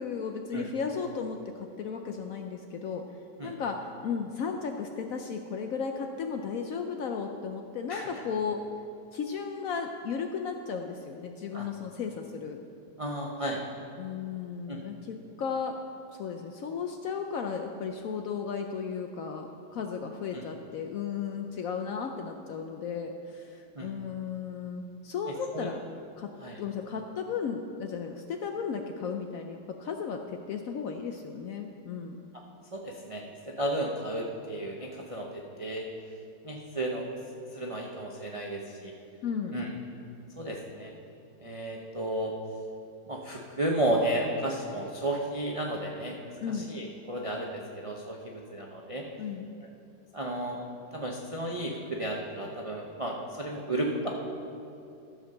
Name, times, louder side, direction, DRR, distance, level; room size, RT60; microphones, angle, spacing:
voice 1, 0.0-3.0 3.4-8.6 9.1-12.6 14.0-15.8 16.1-25.8 26.2-26.3 26.6-32.2 39.2-39.6 46.4-46.7 49.2-49.5, left 6 dB, 70° left, 4 dB, 0.8 m, -35 dB
voice 2, 13.0-13.6 14.7-14.8 20.3-20.4 23.7-23.9 25.5-25.7 26.4-26.6 32.7-33.2 33.6-35.3 35.6-35.9 36.4-37.1 37.5-38.9 39.5-39.7 40.4-40.9 41.4-42.3 43.1-49.0 50.1-50.6 50.9-54.1, right 1 dB, 45° right, -1 dB, 0.4 m, -33 dB
13.5 x 5.1 x 6.5 m, 2.7 s
omnidirectional pair, 1.9 m